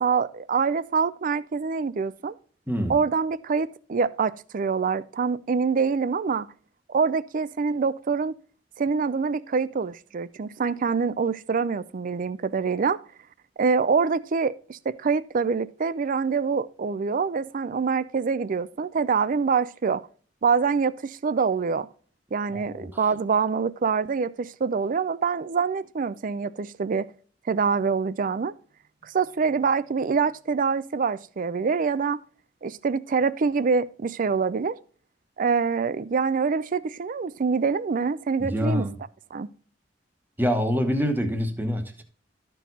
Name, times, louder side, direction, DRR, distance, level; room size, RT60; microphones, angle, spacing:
voice 1, 0.0-2.4 2.9-6.5 6.9-8.4 8.8-13.0 13.6-20.0 20.4-21.9 22.3-27.1 27.5-28.5 29.0-32.2 32.6-34.8 35.4-38.9 39.3-39.5, right 5 dB, 50° right, 0.4 m, -25 dB
voice 2, 2.7-3.0 22.5-23.0 38.4-38.9 40.4-42.0, equal, 10° right, 1.1 m, -26 dB
12.5 x 4.6 x 4.0 m
head